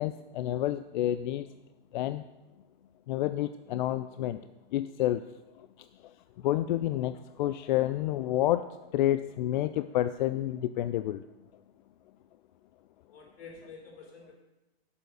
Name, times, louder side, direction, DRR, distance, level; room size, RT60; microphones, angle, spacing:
voice 1, 0.0-1.5 1.9-2.2 3.1-5.2 5.6-5.7 6.0-6.1 6.4-11.2, left 13 dB, 50° left, 12 dB, 0.4 m, -29 dB
voice 2, 13.1-14.4, left 4 dB, 65° left, 0 dB, 4.5 m, -49 dB
10.0 x 7.0 x 7.8 m, 1.0 s
hypercardioid pair, 145°, 32 cm